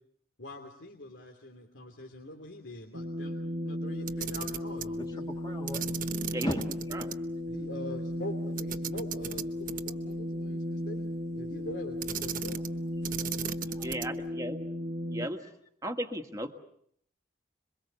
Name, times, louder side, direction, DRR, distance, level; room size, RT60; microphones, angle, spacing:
voice 1, 0.4-3.4 3.6-5.1 6.4-6.6 7.5-12.6, left 1 dB, 75° left, 2 dB, 2.9 m, -43 dB
sound 1, 2.9-15.3, left 1 dB, 60° right, 1.3 m, -35 dB
Camera, 4.0-4.9 5.7-7.2 7.5-7.6 8.6-10.2 12.0-12.8 13.0-14.2, right 8 dB, 45° right, 1.0 m, -37 dB
voice 2, 5.0-5.9 6.4-6.6 12.5-12.6 13.2-14.2, equal, 20° left, 1 dB, 2.5 m, -39 dB
voice 3, 13.8-14.6 15.1-15.5 15.8-16.5, equal, 15° right, 5 dB, 1.7 m, -35 dB
27.0 x 23.0 x 7.0 m, 0.68 s
head